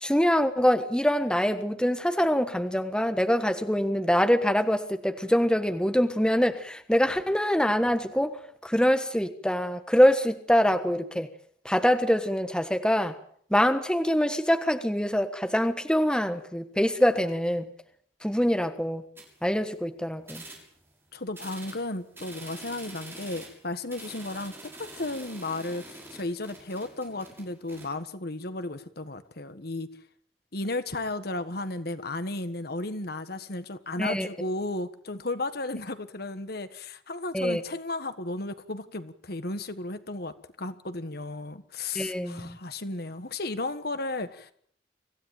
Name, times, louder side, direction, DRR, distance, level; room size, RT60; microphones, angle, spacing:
voice 1, 0.0-8.4 8.6-11.3 11.6-13.1 13.5-17.7 18.2-19.0 19.4-20.4 34.0-34.3 37.3-37.6 41.9-42.6, equal, 5° left, 1.4 m, -24 dB
sound 1, 19.2-19.8 20.2-20.9 21.3-27.9, right 2 dB, 15° right, 7.1 m, -46 dB
voice 2, 21.1-29.9 30.5-44.5, left 2 dB, 55° left, 1.6 m, -34 dB
25.5 x 16.0 x 9.0 m
head